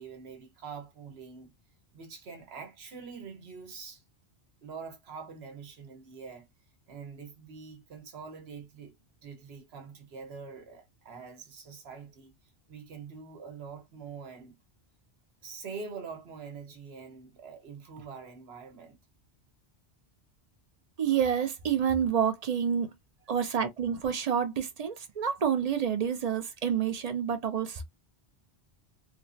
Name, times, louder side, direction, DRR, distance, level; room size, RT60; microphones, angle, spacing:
voice 1, 0.0-1.5 1.9-4.0 4.6-6.5 6.9-8.9 9.2-12.3 12.7-14.6 15.4-19.0, right 5 dB, 70° right, 1.1 m, -44 dB
voice 2, 21.0-22.9 23.3-27.8, right 8 dB, 50° right, 0.5 m, -28 dB
3.3 x 2.0 x 2.5 m
omnidirectional pair, 1.1 m